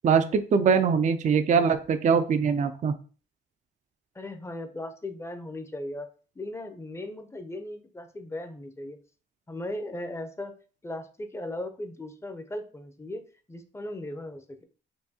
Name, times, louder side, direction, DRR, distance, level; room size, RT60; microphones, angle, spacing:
voice 1, 0.0-2.9, right 6 dB, 40° right, 9 dB, 0.4 m, -22 dB
voice 2, 4.1-6.1 6.4-9.0 9.5-10.5 10.8-13.2 13.5-14.6, left 1 dB, 15° left, 8 dB, 0.6 m, -37 dB
4.4 x 2.6 x 2.8 m, 0.38 s
cardioid pair, 90°, 20 cm